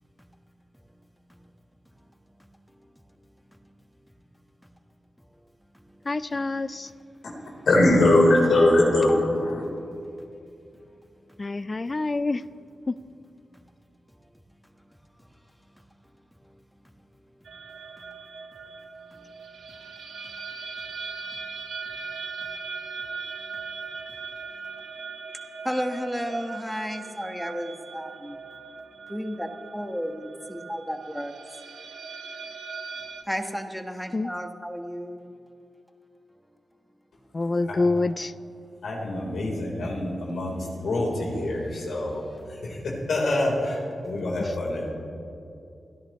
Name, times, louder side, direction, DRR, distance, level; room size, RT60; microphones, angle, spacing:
voice 1, 6.1-6.9 11.4-12.4 12.9-13.0 34.1-34.3 37.3-38.3, left 3 dB, 40° left, 16 dB, 0.5 m, -26 dB
voice 2, 7.6-9.6 37.7-37.9 38.8-42.2 42.6-44.9, left 1 dB, 80° left, -2 dB, 3.9 m, -23 dB
sound 1, 17.5-33.2, right 5 dB, 80° right, 1.1 m, -39 dB
voice 3, 25.6-28.4 29.1-31.3 33.2-35.2, equal, 5° left, 6 dB, 1.4 m, -33 dB
29.0 x 10.5 x 3.1 m, 2.6 s
cardioid pair, 55°, 0 cm